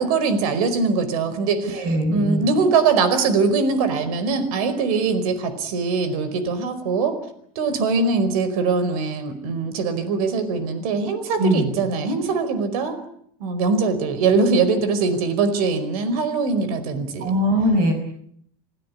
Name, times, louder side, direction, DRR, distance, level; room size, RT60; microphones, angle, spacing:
voice 1, 0.0-7.2 7.5-13.0 13.4-17.3, right 4 dB, 80° right, 12 dB, 4.8 m, -22 dB
voice 2, 1.7-2.5 11.4-11.7 17.2-17.9, equal, 45° right, 6 dB, 5.4 m, -21 dB
28.0 x 17.0 x 9.7 m, 0.68 s
supercardioid pair, 160°, 19 cm